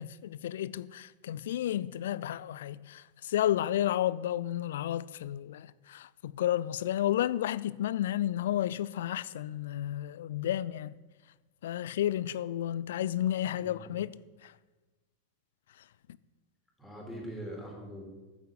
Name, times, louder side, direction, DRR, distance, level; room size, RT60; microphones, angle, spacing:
voice 1, 0.0-10.9 11.6-14.2 14.4-14.5, left 12 dB, 60° left, 0.4 m, -32 dB
voice 2, 13.6-13.9 16.8-18.1, equal, 5° left, 3.3 m, -42 dB
9.6 x 7.4 x 7.8 m
figure-of-eight pair, 90°, 0 cm